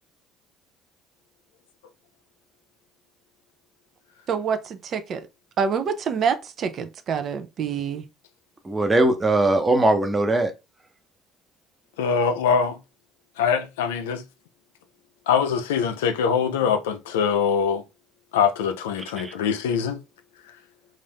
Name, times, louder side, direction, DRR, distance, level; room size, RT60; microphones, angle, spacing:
voice 1, 4.3-5.3 5.6-8.1, right 6 dB, 50° right, 0.5 m, -26 dB
voice 2, 8.6-10.5 19.2-19.3, right 2 dB, 20° right, 0.8 m, -20 dB
voice 3, 12.0-12.8 13.4-14.2 15.3-17.8 18.3-20.0, left 6 dB, 85° left, 0.4 m, -23 dB
2.6 x 2.5 x 3.4 m
hypercardioid pair, 65°, 0 cm